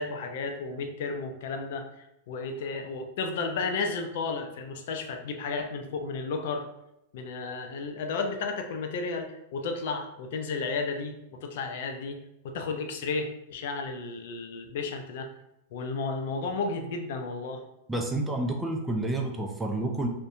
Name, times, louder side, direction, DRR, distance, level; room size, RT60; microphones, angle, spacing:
voice 1, 0.0-6.6 7.1-12.2 12.4-15.3 15.7-17.6, left 4 dB, 65° left, 5 dB, 0.4 m, -33 dB
voice 2, 17.9-20.1, right 2 dB, 10° right, 1 dB, 0.3 m, -29 dB
2.6 x 2.1 x 2.5 m, 0.85 s
hypercardioid pair, 130°, 0 cm